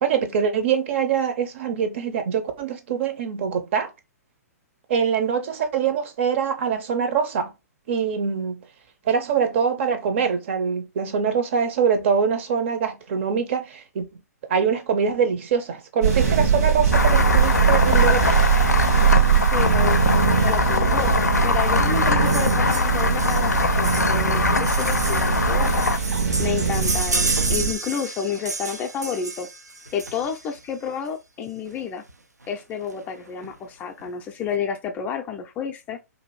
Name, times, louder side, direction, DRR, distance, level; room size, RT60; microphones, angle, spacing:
voice 1, 0.0-3.9 4.9-7.5 7.9-8.6 9.1-14.0 14.5-18.4, right 6 dB, 45° right, 0.6 m, -24 dB
sound 1, 16.0-27.7, right 7 dB, 65° right, 1.2 m, -21 dB
sound 2, 16.9-26.0, left 4 dB, 85° left, 0.4 m, -23 dB
voice 2, 19.4-25.9 26.4-29.5 29.9-32.0 32.5-36.0, left 7 dB, 20° left, 0.4 m, -30 dB
sound 3, 22.2-30.6 31.7-31.8 32.1-32.2 32.4-32.6 32.9-33.5 34.0-34.1, right 3 dB, 85° right, 0.5 m, -31 dB
2.6 x 2.4 x 3.1 m
figure-of-eight pair, 120°, 9 cm